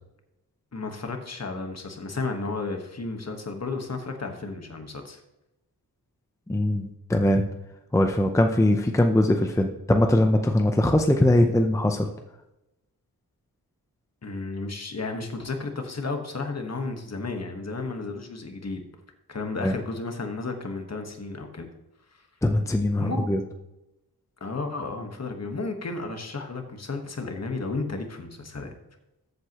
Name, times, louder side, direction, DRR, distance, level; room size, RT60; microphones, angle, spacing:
voice 1, 0.7-5.2 14.2-18.8 19.3-21.7 23.0-23.3 24.4-28.7, left 3 dB, 45° left, 4 dB, 1.4 m, -33 dB
voice 2, 6.5-7.4 7.9-12.1 19.6-19.7 22.4-23.4, left 1 dB, 10° left, 5 dB, 0.6 m, -21 dB
14.0 x 8.1 x 3.0 m, 0.91 s
wide cardioid pair, 140°, 38 cm